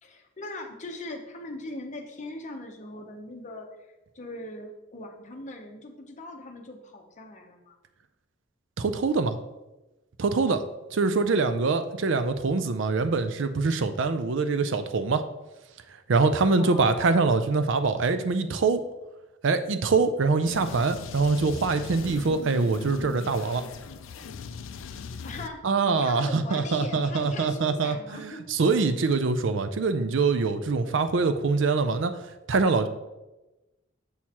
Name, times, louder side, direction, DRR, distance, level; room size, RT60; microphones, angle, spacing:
voice 1, 0.0-3.7 4.1-7.8 16.6-17.0 24.2-24.3 25.2-25.6 26.0-28.5, left 2 dB, 35° left, 3 dB, 0.8 m, -40 dB
voice 2, 8.8-9.4 10.2-10.6 10.9-15.2 16.1-18.8 19.4-23.6 25.6-32.1 32.5-32.9, right 4 dB, 65° right, 10 dB, 0.5 m, -24 dB
sound 1, 20.4-25.5, left 5 dB, 75° left, 0.4 m, -40 dB
7.1 x 6.3 x 2.9 m, 1.0 s
head